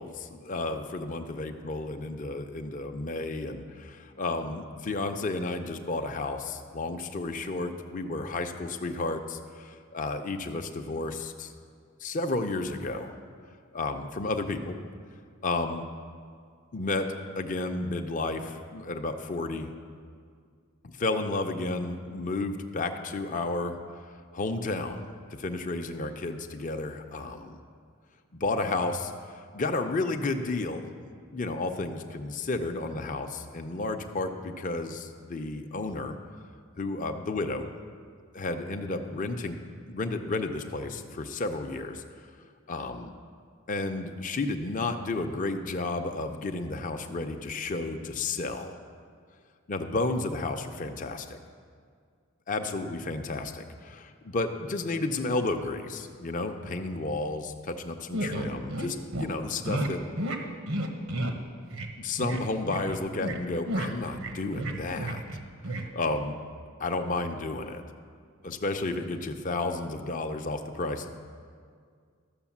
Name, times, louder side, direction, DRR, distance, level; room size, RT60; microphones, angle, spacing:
voice 1, 0.0-11.5 12.0-13.2 13.7-14.8 15.4-15.8 16.7-19.7 20.8-23.8 24.3-27.6 28.3-30.9 31.3-36.2 36.8-37.7 38.3-39.6 39.9-42.0 42.7-43.1 43.7-48.8 49.7-51.4 52.5-60.0 62.0-65.2 65.7-66.4 66.8-67.8 68.4-71.1, left 2 dB, 40° left, 5 dB, 0.6 m, -32 dB
sound 1, 58.1-58.9 59.1-59.3 59.6-59.9 60.2-60.4 60.7-61.3 61.7-61.9 62.2-62.4 62.7-63.4 63.6-65.4 65.6-65.8, right 1 dB, 80° right, 1.1 m, -31 dB
13.0 x 6.3 x 7.2 m, 2.1 s
head